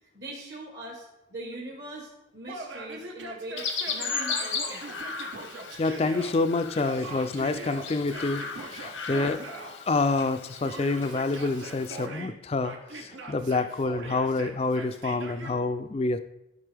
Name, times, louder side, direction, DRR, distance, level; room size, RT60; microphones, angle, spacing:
voice 1, 0.1-1.0 1.3-5.0 9.1-9.4, right 1 dB, 55° right, -3 dB, 1.3 m, -41 dB
Yell, 2.5-6.3 6.8-9.7 10.6-12.3 12.6-15.5, right 2 dB, 80° right, 1.1 m, -41 dB
Chirp tweet, 3.6-12.1, left 5 dB, 80° left, 0.9 m, -36 dB
voice 2, 5.8-16.2, left 3 dB, 30° left, 11 dB, 0.3 m, -28 dB
11.0 x 5.2 x 3.4 m, 0.89 s
head